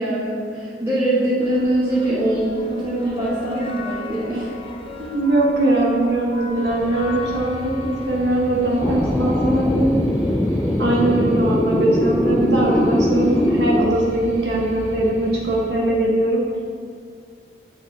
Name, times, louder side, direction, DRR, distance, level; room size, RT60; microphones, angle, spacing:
voice 1, 0.0-4.5, right 1 dB, 15° right, -12 dB, 1.6 m, -22 dB
sound 1, 1.4-9.1, left 3 dB, 30° left, 0.9 m, -37 dB
voice 2, 5.0-10.0 10.8-16.4, right 1 dB, 70° right, -4 dB, 1.3 m, -21 dB
sound 2, 6.5-15.7, equal, 40° right, 1.3 m, -34 dB
sound 3, 8.8-13.9, left 1 dB, 10° left, 0.3 m, -21 dB
9.2 x 6.3 x 4.1 m, 2.3 s
head